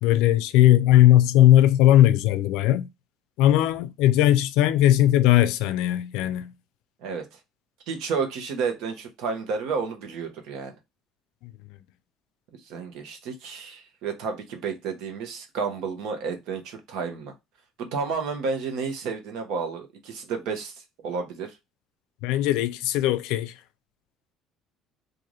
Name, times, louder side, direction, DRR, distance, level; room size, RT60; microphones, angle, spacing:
voice 1, 0.0-2.9 3.4-6.5 22.2-23.5, left 13 dB, 80° left, 0.4 m, -18 dB
voice 2, 7.9-10.7 12.5-17.3 17.8-20.7 21.0-21.6, right 5 dB, 65° right, 1.0 m, -31 dB
3.2 x 2.5 x 3.8 m
cardioid pair, 175°, 0 cm